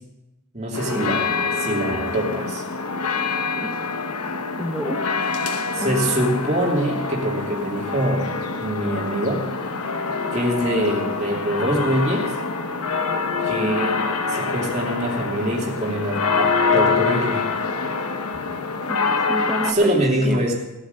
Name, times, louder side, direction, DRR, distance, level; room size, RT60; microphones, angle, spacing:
voice 1, 0.5-2.6 5.7-8.3 8.6-9.5 10.3-12.3 13.5-17.5 19.6-20.5, right 1 dB, 30° right, -2 dB, 2.8 m, -24 dB
sound 1, 0.7-19.7, left 4 dB, 85° left, 1.1 m, -25 dB
voice 2, 4.6-5.0 5.8-6.1 13.6-14.0 18.9-20.0 20.2-20.4, right 1 dB, ahead, 3 dB, 1.0 m, -29 dB
17.0 x 8.2 x 6.8 m, 0.99 s
head